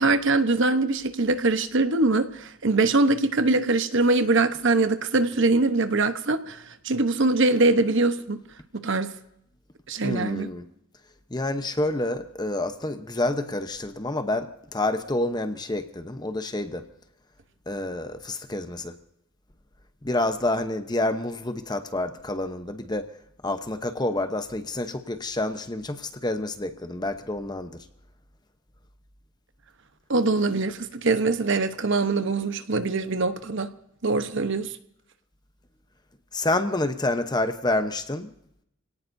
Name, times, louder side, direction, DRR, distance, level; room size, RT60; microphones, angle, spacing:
voice 1, 0.0-8.4 8.7-9.1 9.9-10.5 30.1-33.7 34.0-34.7, right 3 dB, 55° right, 10 dB, 1.0 m, -23 dB
voice 2, 10.0-10.7 11.3-16.9 17.7-19.0 20.0-23.1 23.4-27.8 36.3-38.3, left 2 dB, 20° left, 8 dB, 0.9 m, -28 dB
27.5 x 18.0 x 2.7 m, 0.75 s
head